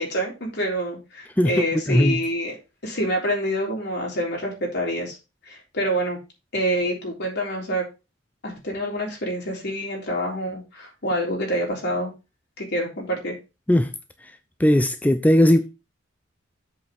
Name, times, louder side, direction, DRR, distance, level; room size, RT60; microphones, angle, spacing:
voice 1, 0.0-2.6 2.8-5.2 5.5-6.2 6.5-7.8 8.4-12.1 12.6-13.4, equal, 60° left, 3.6 m, -27 dB
voice 2, 1.4-2.2 13.7-13.9 14.6-15.7, left 1 dB, 10° left, 0.5 m, -18 dB
7.9 x 4.9 x 5.4 m
head